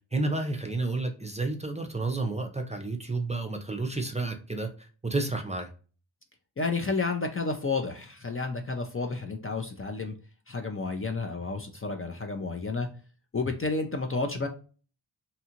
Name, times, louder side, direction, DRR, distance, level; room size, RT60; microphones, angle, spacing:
voice 1, 0.1-5.7, right 2 dB, 15° right, 4 dB, 0.6 m, -31 dB
voice 2, 6.6-10.1 10.5-12.9 13.3-14.5, left 3 dB, 30° left, 4 dB, 0.6 m, -31 dB
2.8 x 2.3 x 2.8 m, 0.38 s
cardioid pair, 50°, 48 cm